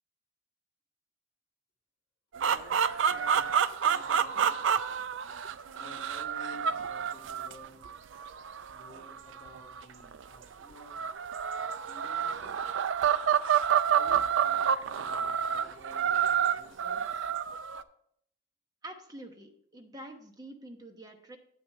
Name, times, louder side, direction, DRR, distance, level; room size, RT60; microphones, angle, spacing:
sound 1, 2.3-10.2 10.8-17.8, right 8 dB, 80° right, 0.4 m, -29 dB
voice 1, 2.4-4.6 5.7-7.9 8.7-10.9 11.2-11.3 11.5-12.7 13.9-17.3, left 2 dB, 25° left, -5 dB, 2.7 m, -53 dB
voice 2, 18.8-21.4, right 1 dB, 20° right, 4 dB, 1.0 m, -46 dB
8.6 x 8.6 x 3.4 m, 0.68 s
head